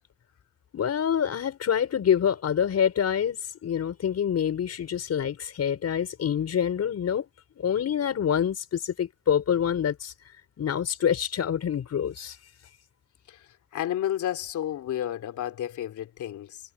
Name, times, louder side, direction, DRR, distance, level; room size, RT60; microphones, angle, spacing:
voice 1, 0.7-7.2 7.6-10.1 10.6-12.4, left 8 dB, 55° left, 5.3 m, -26 dB
voice 2, 13.7-16.6, left 11 dB, 75° left, 3.4 m, -31 dB
cardioid pair, 90°, 30 cm